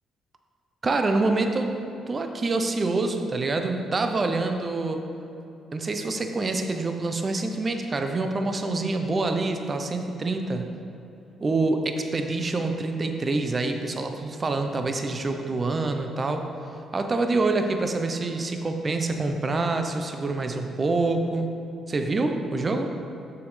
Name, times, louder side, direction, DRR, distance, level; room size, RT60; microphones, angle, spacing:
voice 1, 0.8-1.7 2.1-5.0 5.7-10.7 11.4-16.4 16.9-21.5 21.9-22.9, right 3 dB, 35° right, 5 dB, 0.6 m, -26 dB
7.2 x 6.7 x 3.2 m, 2.8 s
cardioid pair, 90°, 0 cm